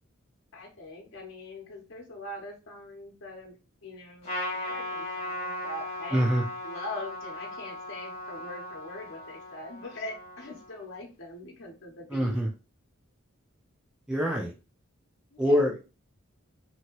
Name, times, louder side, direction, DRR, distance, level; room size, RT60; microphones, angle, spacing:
voice 1, 0.5-3.6 3.8-6.2 6.6-12.4 15.3-15.6, left 2 dB, 60° left, -2 dB, 0.8 m, -42 dB
Trumpet, 4.2-10.9, left 1 dB, 30° left, 1.4 m, -37 dB
voice 2, 6.1-6.4 12.1-12.5 14.1-14.5 15.4-15.8, equal, 5° right, -1 dB, 0.3 m, -24 dB
2.9 x 2.7 x 2.9 m, 0.32 s
head